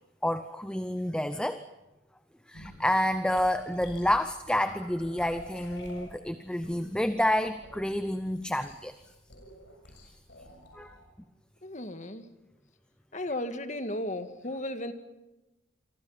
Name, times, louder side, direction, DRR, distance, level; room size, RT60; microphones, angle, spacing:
voice 1, 0.2-1.6 2.5-8.9 10.7-10.9, left 1 dB, 5° left, 10 dB, 0.7 m, -29 dB
sound 1, 2.5-11.0, left 1 dB, 60° left, 7.2 m, -50 dB
voice 2, 11.6-12.3 13.1-14.9, left 1 dB, 35° left, 9 dB, 1.9 m, -35 dB
28.0 x 25.0 x 5.8 m, 1.0 s
head